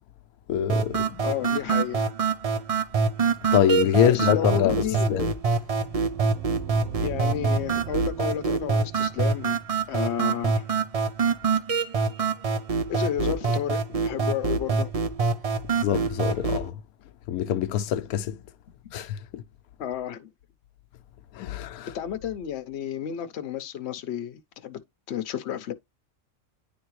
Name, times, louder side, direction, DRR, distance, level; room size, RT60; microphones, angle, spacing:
voice 1, 0.5-1.2 3.5-4.8 5.1-5.3 15.8-16.7 17.3-18.3 18.9-19.2 21.4-21.9, left 10 dB, 90° left, 1.1 m, -24 dB
sound 1, 0.7-16.7, right 4 dB, 50° right, 0.4 m, -25 dB
voice 2, 1.2-2.0 4.0-5.2 7.0-9.6 9.9-10.6 12.9-14.9 19.8-20.3 21.9-24.8 25.1-25.7, left 10 dB, 55° left, 0.9 m, -31 dB
sound 2, 5.6-10.5, right 12 dB, 85° right, 1.3 m, -41 dB
10.0 x 3.5 x 3.1 m
omnidirectional pair, 1.5 m